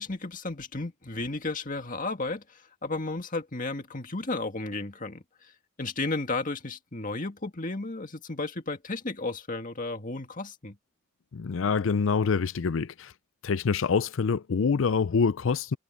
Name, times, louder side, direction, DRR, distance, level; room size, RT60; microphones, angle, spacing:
voice 1, 0.0-5.5 5.8-10.8, left 3 dB, 40° left, 2.0 m, -33 dB
voice 2, 11.3-13.1 13.4-15.8, left 5 dB, 65° left, 0.5 m, -26 dB
head